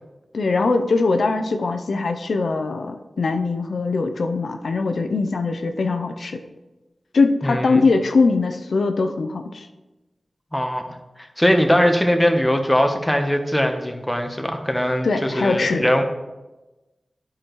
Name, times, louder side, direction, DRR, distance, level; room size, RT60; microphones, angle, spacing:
voice 1, 0.3-6.4 7.1-9.7 15.0-15.8, left 3 dB, 90° left, 6 dB, 0.5 m, -21 dB
voice 2, 7.4-7.8 10.5-10.8 11.4-16.0, equal, 10° left, 4 dB, 1.0 m, -20 dB
9.7 x 4.9 x 3.1 m, 1.1 s
cardioid pair, 45°, 0 cm